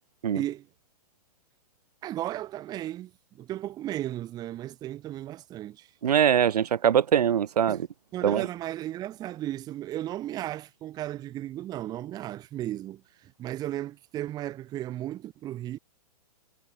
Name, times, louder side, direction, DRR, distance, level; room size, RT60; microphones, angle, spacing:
voice 1, 0.3-0.7 2.0-5.9 7.7-7.8 8.1-15.8, right 13 dB, 20° right, 0.9 m, -35 dB
voice 2, 6.0-7.8 8.2-8.5, right 9 dB, 75° right, 1.4 m, -22 dB
hypercardioid pair, 140°, 20 cm